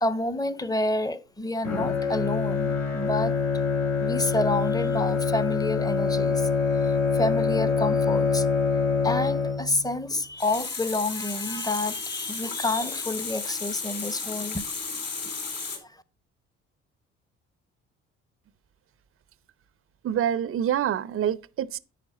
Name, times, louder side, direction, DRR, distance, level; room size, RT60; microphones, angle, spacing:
voice 1, 0.0-3.4 4.0-6.5 6.8-8.5 9.0-14.7 15.8-15.9, left 2 dB, 10° left, 0.9 m, -29 dB
Bowed string instrument, 1.6-10.0, left 5 dB, 75° left, 3.5 m, -25 dB
Water tap faucet, 10.1-15.8, left 4 dB, 45° left, 4.4 m, -34 dB
voice 2, 20.0-21.8, right 9 dB, 40° right, 0.6 m, -26 dB
10.0 x 4.5 x 5.5 m
hypercardioid pair, 55°, 33 cm